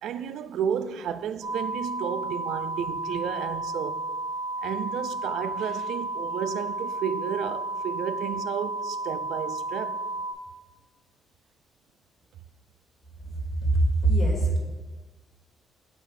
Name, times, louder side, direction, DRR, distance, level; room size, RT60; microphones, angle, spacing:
voice 1, 0.0-4.1 4.6-10.0, right 8 dB, 75° right, 0.3 m, -32 dB
sound 1, 1.4-10.3, right 2 dB, 20° right, 2.2 m, -32 dB
voice 2, 13.6-14.6, right 2 dB, 25° left, 2.4 m, -22 dB
8.8 x 3.3 x 5.0 m
cardioid pair, 90°, 0 cm